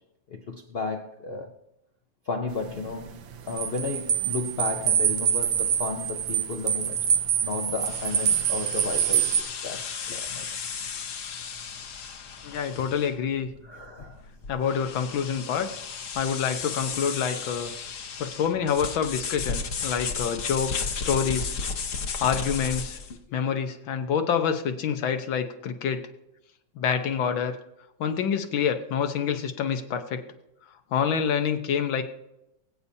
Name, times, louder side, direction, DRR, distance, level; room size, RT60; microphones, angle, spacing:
voice 1, 0.3-1.5 2.3-7.1 7.4-10.5 12.6-12.9 13.6-14.3 15.9-16.0 23.3-23.4, left 4 dB, 70° left, 0.5 m, -34 dB
sound 1, 2.5-9.4, right 9 dB, 80° right, 1.5 m, -25 dB
sound 2, 7.8-23.2, left 5 dB, 50° left, 1.0 m, -34 dB
voice 2, 12.4-13.5 14.5-15.7 16.2-17.7 18.2-21.6 22.2-23.0 23.3-26.0 26.8-27.6 28.0-30.2 30.9-32.0, left 7 dB, 90° left, 1.7 m, -27 dB
22.0 x 8.3 x 2.7 m
omnidirectional pair, 2.1 m